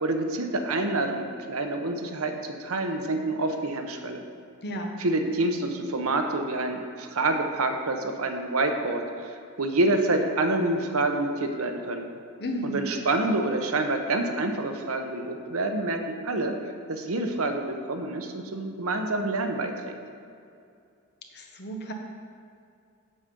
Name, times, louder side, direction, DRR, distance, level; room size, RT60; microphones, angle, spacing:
voice 1, 0.0-4.2 5.0-12.1 12.6-16.5 16.9-19.9, right 2 dB, 70° right, 4 dB, 0.9 m, -27 dB
voice 2, 4.6-5.0 12.4-12.8 21.3-21.9, equal, 50° left, 3 dB, 1.0 m, -33 dB
8.0 x 7.5 x 5.3 m, 2.4 s
head